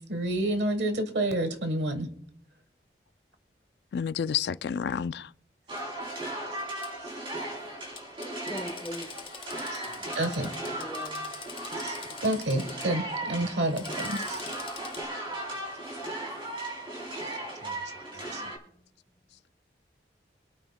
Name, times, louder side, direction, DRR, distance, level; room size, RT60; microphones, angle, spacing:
voice 1, 0.1-2.1 9.7-9.8 10.1-10.5 11.8-11.9 12.2-14.4 17.6-17.7 18.1-18.4, right 1 dB, 75° right, 1.3 m, -29 dB
voice 2, 3.9-5.3, left 7 dB, 70° left, 0.3 m, -30 dB
sound 1, 5.7-18.6, right 1 dB, 30° right, 3.6 m, -36 dB
Drill, 6.8-6.9 8.0-12.9 13.6-15.0, left 6 dB, 30° left, 0.9 m, -45 dB
voice 3, 8.5-9.1 10.4-11.6 17.8-17.9 18.3-18.8, equal, 10° left, 1.2 m, -42 dB
26.5 x 8.9 x 2.2 m
head